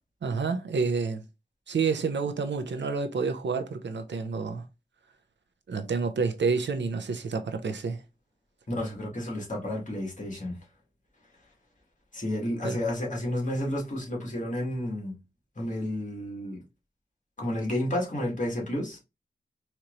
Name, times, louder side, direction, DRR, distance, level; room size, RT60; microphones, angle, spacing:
voice 1, 0.2-1.2 1.7-4.6 5.7-8.0 12.6-12.8, right 5 dB, 90° right, 0.6 m, -29 dB
voice 2, 8.7-10.6 12.1-15.2 15.6-16.6 17.4-19.0, left 1 dB, 45° left, 1.9 m, -31 dB
4.4 x 2.9 x 2.5 m
wide cardioid pair, 55°, 18 cm